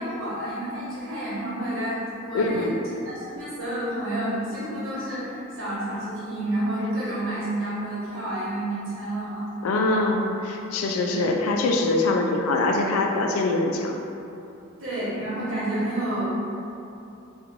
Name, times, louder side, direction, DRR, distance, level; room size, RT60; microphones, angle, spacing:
voice 1, 0.0-2.7 3.0-9.4 9.8-10.1 11.1-11.3 14.8-16.3, right 1 dB, 75° right, -9 dB, 1.2 m, -30 dB
voice 2, 2.3-2.8 9.6-14.0, left 2 dB, 85° left, 2 dB, 0.3 m, -23 dB
3.0 x 2.4 x 3.5 m, 2.8 s
head